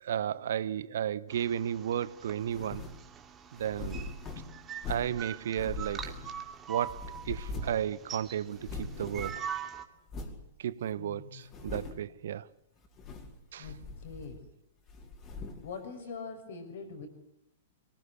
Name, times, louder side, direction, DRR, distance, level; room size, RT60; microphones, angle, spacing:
voice 1, 0.0-2.8 3.5-4.1 4.9-6.1 6.7-9.3 10.6-12.5 13.5-13.7, right 10 dB, 60° right, 0.9 m, -33 dB
sound 1, 1.3-9.8, right 8 dB, 20° right, 2.6 m, -43 dB
sound 2, 2.5-3.0 3.6-5.2 5.6-6.5 6.8-7.9 8.1-8.2 8.5-9.5 10.1-10.4 10.9-11.0 11.4-12.1 12.8-13.4 13.6-14.5 14.9-15.7, left 3 dB, 30° left, 4.8 m, -41 dB
voice 2, 11.0-11.4 13.6-14.4 15.6-17.1, left 5 dB, 60° left, 5.8 m, -43 dB
24.0 x 19.5 x 9.8 m
figure-of-eight pair, 105°, 0 cm